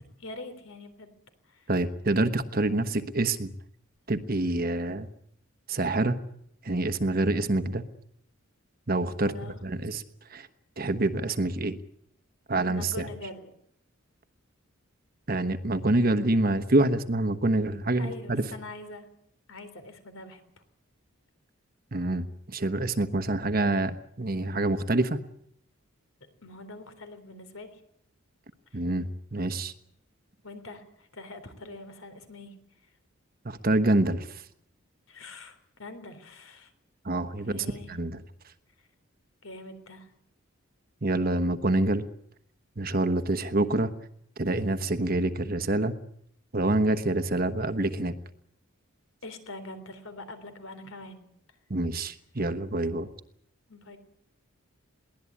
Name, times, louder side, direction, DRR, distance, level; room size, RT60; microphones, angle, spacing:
voice 1, 0.2-1.1 1.4-1.7 9.2-9.6 12.7-13.5 18.0-19.1 19.5-20.6 26.4-27.8 28.7-28.8 30.4-32.5 35.1-36.7 37.5-37.9 38.8-38.9 39.4-40.1 49.2-51.2 53.7-54.0, left 2 dB, 75° left, 10 dB, 3.7 m, -44 dB
voice 2, 1.7-3.5 4.1-5.1 5.7-6.2 6.6-7.8 8.9-10.0 10.3-10.5 10.8-11.8 12.5-13.1 15.3-18.5 21.9-25.2 28.7-29.7 33.4-34.4 37.0-38.2 41.0-42.1 42.8-43.9 44.4-45.9 46.5-48.1 51.7-53.1, right 2 dB, 45° right, 10 dB, 1.1 m, -26 dB
22.0 x 17.5 x 8.6 m, 0.71 s
head